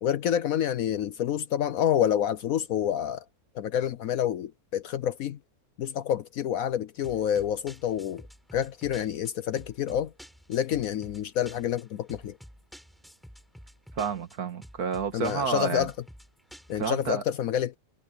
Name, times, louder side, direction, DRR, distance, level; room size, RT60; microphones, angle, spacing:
voice 1, 0.0-3.2 3.5-5.4 5.8-8.2 8.5-10.1 10.5-12.4 15.1-15.9 16.7-17.8, left 10 dB, 70° left, 1.1 m, -28 dB
sound 1, 7.0-17.1, equal, ahead, 5.0 m, -50 dB
voice 2, 14.0-15.9 16.8-17.2, right 6 dB, 85° right, 2.1 m, -30 dB
omnidirectional pair, 1.6 m